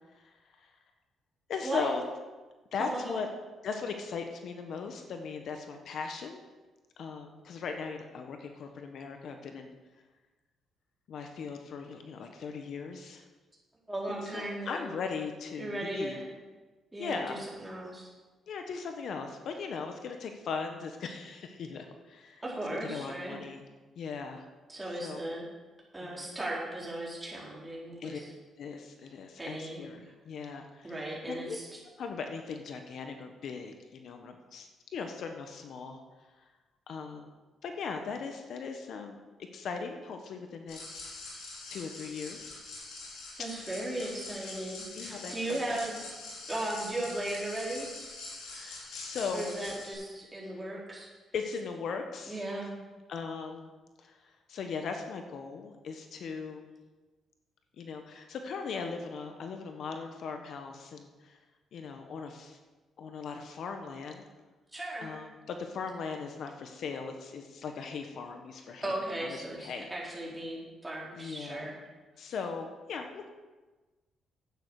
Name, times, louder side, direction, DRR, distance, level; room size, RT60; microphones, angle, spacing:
voice 1, 0.1-0.7 1.5-2.0 2.7-3.3 3.6-6.4 7.0-9.7 11.1-13.2 14.1-16.2 17.0-17.4 18.5-22.4 22.8-23.6 24.0-24.4 25.0-25.2 26.0-26.3 28.0-28.2 28.6-31.6 32.0-36.0 36.4-36.5 36.9-37.3 37.6-39.2 39.5-41.1 41.7-42.6 44.3-44.7 44.9-45.8 48.4-49.5 51.3-52.4 53.1-53.7 54.0-56.7 57.8-61.4 61.7-62.6 63.0-64.2 65.0-69.9 71.2-71.7 72.2-73.3, left 5 dB, 65° left, 5 dB, 1.2 m, -39 dB
voice 2, 2.8-3.1 13.9-14.9 15.6-16.3 16.9-18.1 22.4-23.4 24.7-25.5 25.9-28.2 29.4-29.9 30.8-31.8 43.4-46.0 46.5-47.9 49.3-51.1 52.3-52.8 64.7-65.2 68.8-71.8, right 1 dB, 15° right, -5 dB, 4.4 m, -37 dB
sound 1, 40.7-49.9, left 3 dB, 85° left, 4.3 m, -44 dB
11.5 x 9.0 x 4.9 m, 1.2 s
cardioid pair, 90°, 0 cm